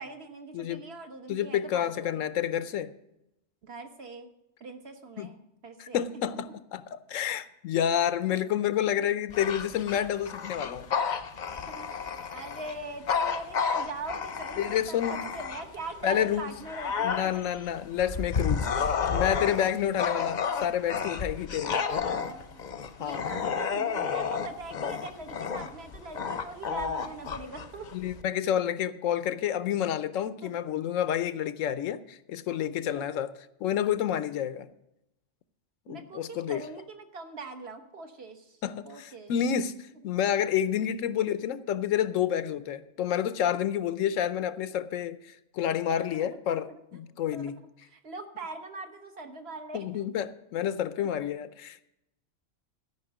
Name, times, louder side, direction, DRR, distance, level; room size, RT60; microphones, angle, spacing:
voice 1, 0.0-2.2 3.6-4.3 4.6-6.0 11.7-17.5 18.5-18.9 21.9-22.6 23.0-27.9 30.4-30.5 32.9-33.2 35.9-38.6 38.8-39.3 45.9-46.4 46.6-46.8 47.3-50.0 51.0-51.3, right 3 dB, 55° right, 1.4 m, -42 dB
voice 2, 0.5-0.8 1.3-2.9 5.2-5.3 5.8-10.9 14.6-15.2 16.0-16.5 17.0-21.8 23.0-23.3 27.9-33.3 33.6-34.7 35.9-36.6 38.6-47.6 49.7-51.9, left 10 dB, 85° left, 1.0 m, -29 dB
Bark / Growling, 9.3-15.9 16.3-28.2, left 6 dB, 45° left, 0.7 m, -31 dB
13.0 x 5.5 x 7.9 m
omnidirectional pair, 1.3 m